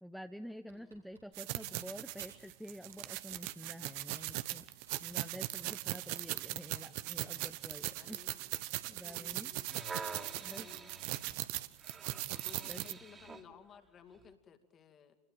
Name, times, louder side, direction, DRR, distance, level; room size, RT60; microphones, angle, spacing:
voice 1, 0.0-4.7 5.0-8.2 8.9-9.5 10.4-10.7 12.7-13.0, equal, ahead, 8 dB, 0.9 m, -49 dB
voice 2, 0.7-1.1 7.9-8.4 9.0-9.7 10.5-11.2 12.3-15.2, left 7 dB, 30° left, 7 dB, 2.6 m, -57 dB
Typing, 0.7-2.6 2.9-3.8 4.2-6.4 6.8-8.2, right 3 dB, 90° right, 4.9 m, -63 dB
sound 1, 1.3-12.9, right 18 dB, 55° right, 1.0 m, -40 dB
sound 2, 9.6-13.5 14.1-14.3, right 4 dB, 20° right, 2.9 m, -47 dB
29.0 x 21.0 x 7.7 m, 1.1 s
figure-of-eight pair, 85°, 0 cm